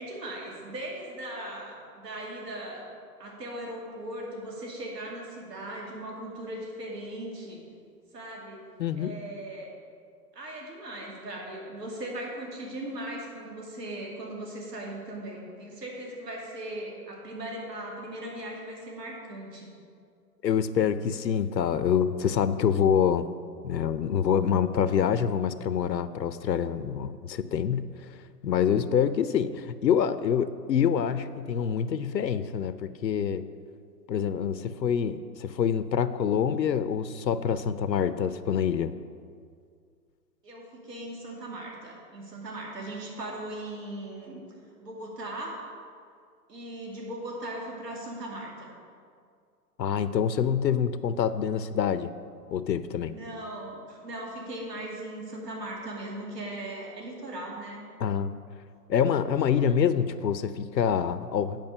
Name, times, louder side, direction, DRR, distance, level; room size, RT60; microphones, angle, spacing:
voice 1, 0.0-2.9 3.2-7.6 8.1-8.6 9.0-9.7 10.3-19.7 40.4-44.4 44.8-45.6 46.5-48.7 53.1-57.8, right 1 dB, 75° right, -2 dB, 2.5 m, -38 dB
voice 2, 8.8-9.1 20.4-23.3 23.6-28.1 28.4-33.4 34.1-38.9 49.8-52.1 52.5-53.1 58.0-58.3 58.9-61.6, left 8 dB, 85° left, 13 dB, 0.6 m, -26 dB
9.0 x 5.2 x 6.6 m, 2.2 s
figure-of-eight pair, 125°, 50 cm